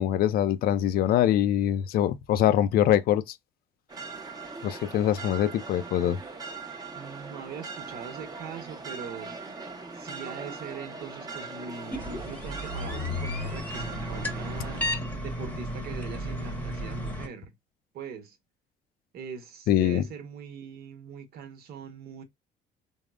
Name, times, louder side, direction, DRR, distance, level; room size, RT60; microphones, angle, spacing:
voice 1, 0.0-3.2 4.6-6.2 19.7-20.0, left 11 dB, 65° left, 0.4 m, -23 dB
sound 1, 3.9-14.9, right 4 dB, 25° right, 0.8 m, -41 dB
voice 2, 6.9-9.3 9.9-17.5 17.9-18.4 19.1-22.2, right 6 dB, 65° right, 0.9 m, -42 dB
sound 2, 11.9-17.3, left 1 dB, 10° left, 0.9 m, -33 dB
3.5 x 2.0 x 2.3 m
cardioid pair, 110°, 17 cm